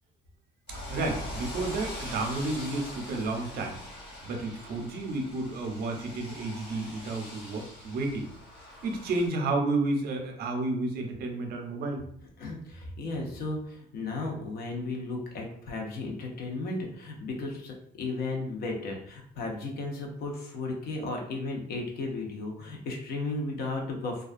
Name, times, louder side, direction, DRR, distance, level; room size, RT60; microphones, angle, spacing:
sound 1, 0.7-9.3, left 1 dB, 90° left, 1.1 m, -42 dB
voice 1, 0.9-3.8 4.2-8.3 8.8-12.0, right 2 dB, 65° right, 2 dB, 0.6 m, -31 dB
voice 2, 12.4-24.2, left 2 dB, 65° left, 1 dB, 0.7 m, -35 dB
2.3 x 2.2 x 2.5 m, 0.66 s
cardioid pair, 110°, 17 cm